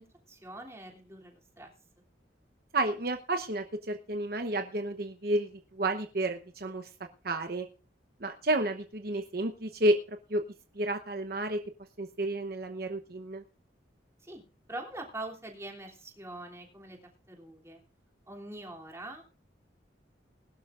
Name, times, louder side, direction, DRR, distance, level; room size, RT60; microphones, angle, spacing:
voice 1, 0.0-1.7 14.2-14.4 14.7-17.0 17.3-17.8 18.3-19.2, right 2 dB, 15° right, 0 dB, 3.0 m, -43 dB
voice 2, 2.7-6.9 7.2-7.7 8.2-10.4 10.7-11.6 12.0-13.4, right 1 dB, 55° right, 6 dB, 1.0 m, -31 dB
20.5 x 12.0 x 2.5 m, 0.37 s
head